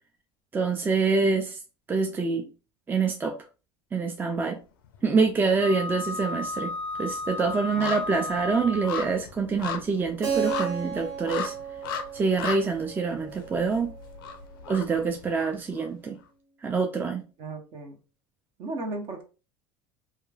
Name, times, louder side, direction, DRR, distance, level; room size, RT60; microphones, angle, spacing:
voice 1, 0.5-1.6 1.9-2.5 2.9-3.4 3.9-4.6 5.0-6.7 7.0-11.5 12.1-13.9 14.7-16.2 16.6-17.2, right 4 dB, 15° right, 0.4 m, -26 dB
sound 1, 4.8-5.6 5.9-15.9 16.2-16.3, left 7 dB, 85° left, 0.4 m, -38 dB
Wind instrument woodwind instrument, 5.6-9.2, left 2 dB, 20° left, 0.7 m, -34 dB
voice 2, 7.7-8.3 17.4-18.0 18.6-19.2, right 2 dB, 50° right, 1.0 m, -36 dB
Keyboard (musical), 10.2-14.8, right 7 dB, 65° right, 1.3 m, -34 dB
2.9 x 2.3 x 2.4 m
supercardioid pair, 100°, 11 cm